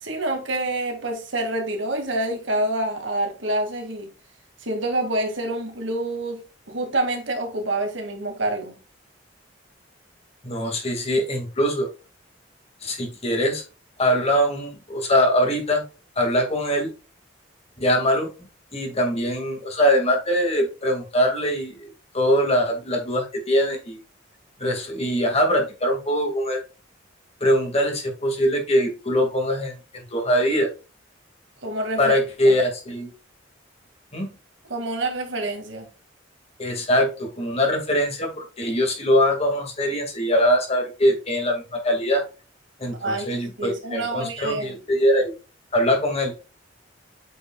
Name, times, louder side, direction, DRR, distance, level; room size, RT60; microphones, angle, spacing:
voice 1, 0.0-4.1 4.6-6.4 6.7-8.8 31.6-32.2 32.4-32.6 34.7-35.9 42.9-43.3 43.6-44.8, right 1 dB, 75° right, 2.1 m, -27 dB
voice 2, 10.4-11.9 12.8-13.6 14.0-15.8 16.2-16.9 17.8-18.3 18.7-24.0 24.6-26.6 27.4-30.7 32.0-33.1 34.1-34.3 36.6-42.2 42.8-45.3 45.7-46.3, equal, 35° left, 2.1 m, -22 dB
8.4 x 5.2 x 2.3 m
head